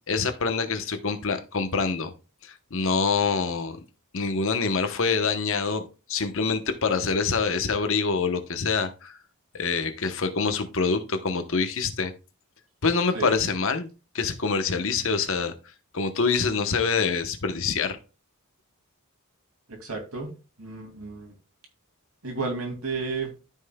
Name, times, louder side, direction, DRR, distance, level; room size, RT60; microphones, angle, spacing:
voice 1, 0.1-2.1 2.4-3.8 4.1-5.8 6.1-9.2 9.5-12.1 12.8-13.9 14.1-15.5 15.9-18.0, left 4 dB, 60° left, 8 dB, 1.0 m, -25 dB
voice 2, 19.7-20.3 20.6-21.3 22.2-23.3, right 4 dB, 75° right, 2 dB, 2.5 m, -32 dB
13.5 x 5.6 x 2.3 m, 0.31 s
head